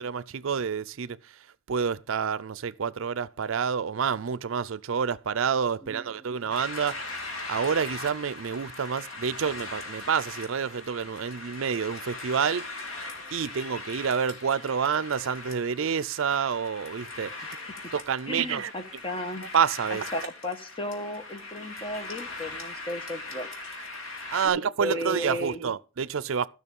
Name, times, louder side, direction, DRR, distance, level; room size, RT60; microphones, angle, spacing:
voice 1, 0.0-1.3 1.7-7.0 7.5-12.7 13.3-17.3 17.9-19.0 19.5-20.0 24.3-26.5, right 6 dB, 70° right, 0.5 m, -28 dB
sound 1, 6.5-24.5, left 3 dB, 75° left, 2.9 m, -40 dB
voice 2, 18.3-19.5 19.9-23.5 24.4-25.6, left 1 dB, 25° left, 1.3 m, -35 dB
14.0 x 6.2 x 5.3 m
head